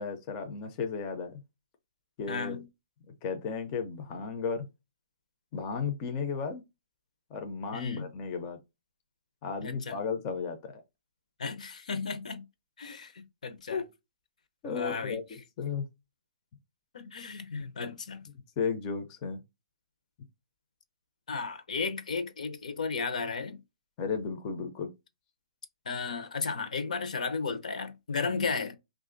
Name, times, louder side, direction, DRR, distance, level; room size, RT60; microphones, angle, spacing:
voice 1, 0.0-1.4 2.2-2.6 3.2-4.7 5.5-6.6 7.3-8.6 9.4-10.8 13.7-13.8 14.6-15.9 18.6-19.4 24.0-24.9 28.2-28.5, left 5 dB, 20° left, 0.4 m, -34 dB
voice 2, 2.3-2.7 7.7-8.1 9.6-10.0 11.4-12.4 12.8-13.8 14.6-15.2 16.9-18.2 21.3-23.6 25.9-28.8, left 4 dB, 75° left, 0.7 m, -34 dB
3.1 x 2.4 x 3.8 m
hypercardioid pair, 170°, 4 cm